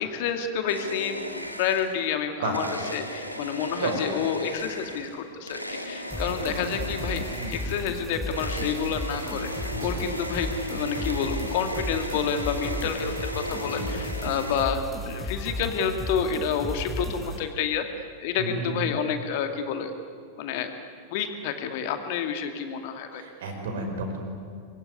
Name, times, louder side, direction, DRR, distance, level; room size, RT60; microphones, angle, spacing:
voice 1, 0.0-2.7 2.9-7.2 7.5-17.8 18.2-19.9 20.4-20.7 21.1-23.2, left 7 dB, 50° left, 7 dB, 2.3 m, -29 dB
sound 1, 0.7-2.1 2.5-14.6, equal, 90° right, 2.2 m, -36 dB
sound 2, 6.1-17.4, equal, ahead, 5.7 m, -34 dB
voice 2, 6.2-6.7 7.4-7.6 9.7-9.9 13.6-13.8 18.4-18.9 23.1-24.2, right 3 dB, 60° right, 4 dB, 5.4 m, -33 dB
25.0 x 22.0 x 9.7 m, 2.2 s
figure-of-eight pair, 90°, 0 cm